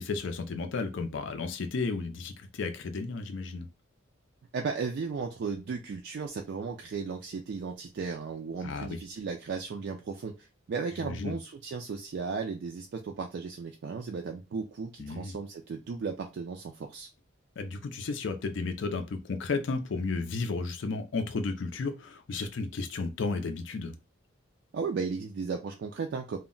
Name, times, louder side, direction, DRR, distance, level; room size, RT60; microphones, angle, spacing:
voice 1, 0.0-3.7 8.6-9.0 11.0-11.4 15.0-15.4 17.6-23.9, left 3 dB, 60° left, 6 dB, 0.4 m, -33 dB
voice 2, 4.5-17.1 24.7-26.4, right 5 dB, 55° right, 2 dB, 0.3 m, -35 dB
2.2 x 2.1 x 3.7 m, 0.29 s
head